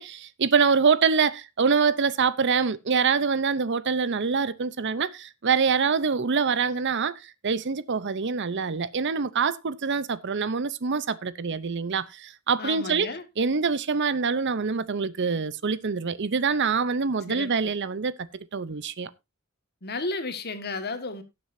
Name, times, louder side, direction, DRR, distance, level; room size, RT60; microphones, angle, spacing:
voice 1, 0.0-13.1 13.4-19.1, right 5 dB, 55° right, 0.7 m, -25 dB
voice 2, 12.6-13.2 17.3-17.7 19.8-21.2, left 3 dB, 50° left, 1.7 m, -33 dB
18.0 x 7.7 x 2.7 m
head